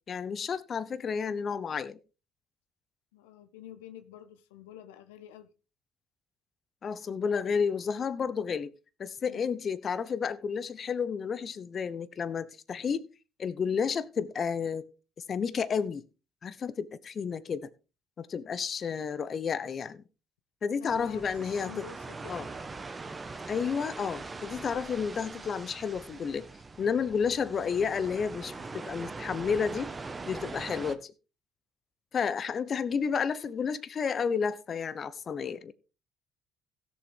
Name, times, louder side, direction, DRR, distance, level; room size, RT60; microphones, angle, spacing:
voice 1, 0.1-2.0 6.8-8.7 9.0-13.1 13.4-14.9 15.3-16.1 16.4-17.7 18.2-20.0 20.6-21.8 22.3-22.5 23.5-26.5 26.8-29.9 30.3-31.1 32.1-35.7, left 6 dB, 50° left, 0.9 m, -31 dB
voice 2, 3.1-5.5 9.2-9.6 20.8-22.4, left 10 dB, 85° left, 0.8 m, -49 dB
sound 1, 20.9-31.0, right 3 dB, 30° right, 1.4 m, -42 dB
16.5 x 7.2 x 3.7 m
hypercardioid pair, 55°, 0 cm